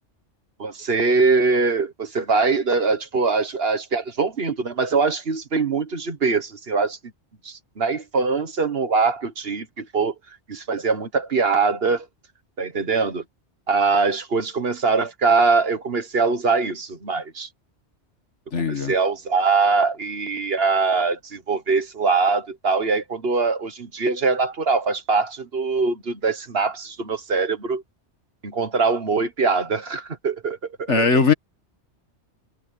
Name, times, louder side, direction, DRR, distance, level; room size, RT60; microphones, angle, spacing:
voice 1, 0.6-7.0 7.4-10.1 10.5-12.1 12.6-13.2 13.7-17.5 18.6-27.8 28.4-31.1, right 4 dB, 55° right, 1.6 m, -22 dB
voice 2, 18.5-18.9 30.9-31.3, left 5 dB, 75° left, 2.0 m, -19 dB
omnidirectional pair, 1.2 m